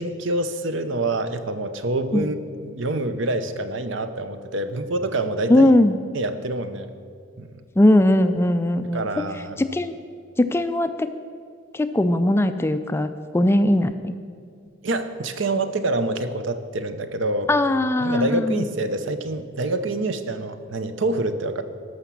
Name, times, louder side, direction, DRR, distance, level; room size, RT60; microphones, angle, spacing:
voice 1, 0.0-2.3 2.8-5.7 6.1-6.9 7.4-7.6 8.9-9.6 14.8-17.5 18.0-21.6, right 2 dB, 65° right, 10 dB, 0.7 m, -26 dB
voice 2, 5.5-6.0 7.8-9.2 9.6-9.9 10.4-11.1 11.7-14.1 17.5-18.7, left 1 dB, 10° left, 10 dB, 0.3 m, -19 dB
13.0 x 5.9 x 7.3 m, 2.2 s
head